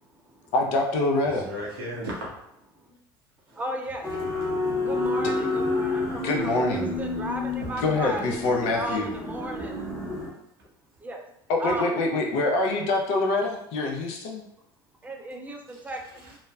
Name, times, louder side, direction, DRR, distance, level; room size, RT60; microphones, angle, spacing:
voice 1, 0.0-0.5 2.8-2.9 3.5-4.1 4.9-8.3 8.6-9.7 11.0-11.2 11.6-11.9 15.0-16.0, right 1 dB, 15° right, 2 dB, 0.5 m, -35 dB
voice 2, 0.5-1.5 6.2-6.9 7.8-9.1 11.5-14.4, left 2 dB, 60° left, 2 dB, 0.5 m, -25 dB
voice 3, 1.2-2.3 3.5-3.6 4.2-4.3 7.6-7.7 9.6-9.7 15.7-16.4, equal, 85° right, -4 dB, 0.7 m, -37 dB
sound 1, 4.0-10.3, left 2 dB, 25° left, 0.9 m, -29 dB
3.1 x 2.0 x 2.2 m, 0.77 s
hypercardioid pair, 75°, 12 cm